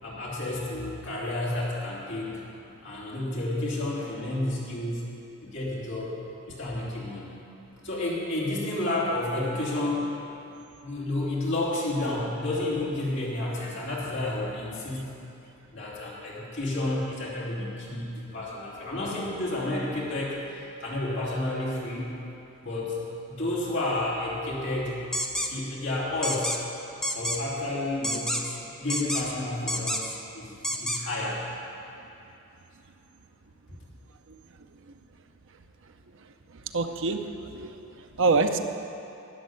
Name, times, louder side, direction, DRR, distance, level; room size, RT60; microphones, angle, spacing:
voice 1, 0.0-2.4 2.8-5.0 5.4-6.1 6.5-7.3 7.8-10.1 10.8-15.1 15.7-20.4 20.8-22.1 22.6-23.0 23.3-25.0 25.4-26.6 27.1-28.3 28.8-30.1 30.3-31.4, left 1 dB, 60° left, -6 dB, 3.1 m, -30 dB
sound 1, 25.1-25.5 26.2-26.6 27.0-27.4 28.0-28.6 28.9-29.3 29.7-30.2 30.6-31.0, equal, 5° left, 0.7 m, -29 dB
voice 2, 36.5-38.6, right 4 dB, 60° right, 6 dB, 0.7 m, -27 dB
12.0 x 6.5 x 9.6 m, 2.8 s
head